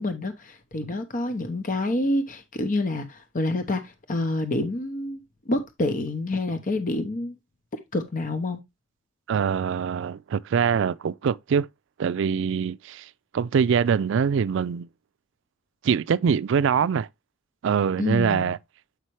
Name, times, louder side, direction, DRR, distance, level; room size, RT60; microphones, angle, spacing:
voice 1, 0.0-7.4 7.9-8.6 18.0-18.5, left 2 dB, 40° left, 0.9 m, -28 dB
voice 2, 9.3-11.7 12.0-14.9 15.8-17.1 17.6-18.6, right 6 dB, 65° right, 0.4 m, -24 dB
8.1 x 5.6 x 3.1 m
head